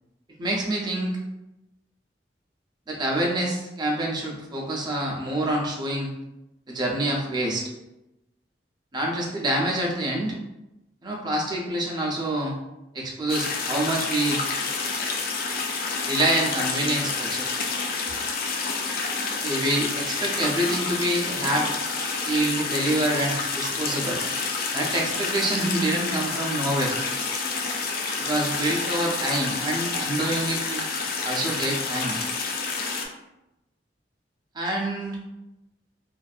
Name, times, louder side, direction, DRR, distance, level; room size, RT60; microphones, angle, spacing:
voice 1, 0.4-1.2 2.9-6.1 6.7-7.7 8.9-10.3 11.0-12.5 12.9-14.4 16.1-17.6 19.4-21.7 22.2-24.2 24.7-26.9 28.2-30.9 31.2-32.2 34.5-35.2, right 1 dB, 25° right, -2 dB, 0.5 m, -26 dB
sound 1, 13.3-33.1, left 4 dB, 55° left, 0.3 m, -29 dB
2.5 x 2.3 x 2.3 m, 0.94 s
head